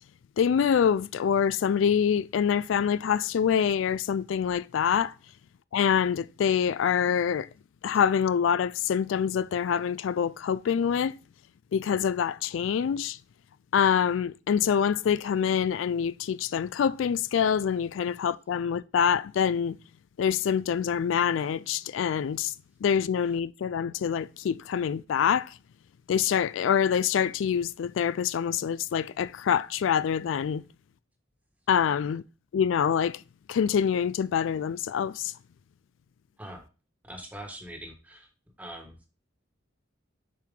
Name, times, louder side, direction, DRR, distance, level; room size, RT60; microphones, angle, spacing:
voice 1, 0.4-5.1 5.7-7.5 7.8-11.1 11.7-13.2 13.7-19.8 20.2-22.5 22.8-25.5 26.1-30.6 31.7-32.2 32.5-33.2 33.5-35.3, left 7 dB, 80° left, 0.3 m, -25 dB
voice 2, 37.0-38.3 38.6-39.0, right 1 dB, 10° right, 1.4 m, -42 dB
7.3 x 4.6 x 3.7 m
head